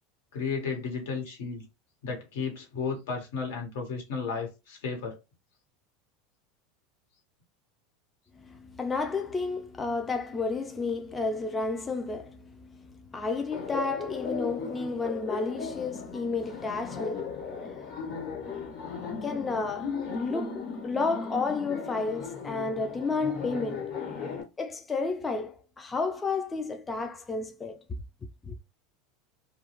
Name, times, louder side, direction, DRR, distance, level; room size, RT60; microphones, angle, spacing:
voice 1, 0.3-1.6 2.0-5.2, left 5 dB, 80° left, 1.2 m, -33 dB
voice 2, 8.3-18.6 19.2-23.9 24.6-28.0 28.5-28.6, left 4 dB, 15° left, 0.3 m, -32 dB
Laughter, 13.5-24.4, left 5 dB, 40° left, 1.1 m, -36 dB
2.2 x 2.1 x 2.9 m
supercardioid pair, 140°, 0 cm